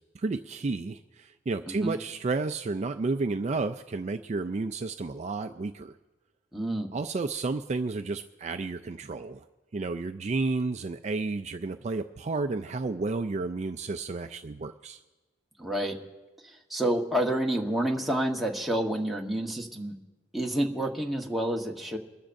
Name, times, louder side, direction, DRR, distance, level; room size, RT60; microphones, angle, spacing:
voice 1, 0.1-5.9 6.9-9.4 9.7-15.0, right 3 dB, 40° right, 8 dB, 0.4 m, -31 dB
voice 2, 6.5-6.9 15.6-16.0 16.7-20.0 20.3-22.0, right 1 dB, ahead, -1 dB, 1.1 m, -29 dB
24.0 x 13.5 x 2.6 m, 1.2 s
head